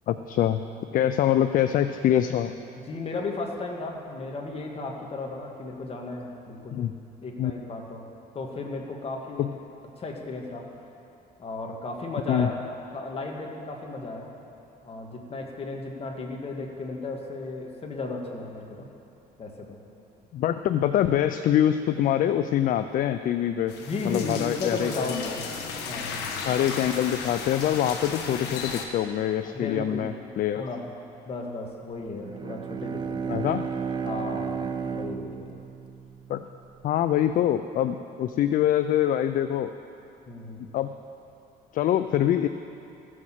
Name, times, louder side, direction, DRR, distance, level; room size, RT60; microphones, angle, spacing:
voice 1, 0.1-0.6 0.9-2.5 6.7-6.9 7.4-7.5 9.4-9.5 12.3-12.5 20.3-23.7 24.0-25.3 26.4-30.6 33.3-33.6 36.3-36.4 36.8-39.7 40.7-40.9 41.7-42.5, left 11 dB, 55° left, 10 dB, 0.4 m, -24 dB
voice 2, 2.9-6.8 7.2-8.0 8.3-9.5 10.0-10.7 11.4-12.5 12.9-14.3 14.8-18.9 19.4-19.8 23.9-25.6 25.8-26.2 29.4-30.2 30.5-30.9 31.3-33.3 34.0-35.6 40.3-40.6, left 3 dB, 35° left, 1 dB, 1.7 m, -35 dB
sound 1, 23.7-28.9, left 5 dB, 90° left, 1.3 m, -35 dB
Bowed string instrument, 32.1-36.8, right 6 dB, 25° right, 0.5 m, -33 dB
14.5 x 6.4 x 7.4 m, 2.7 s
cardioid pair, 110°, 17 cm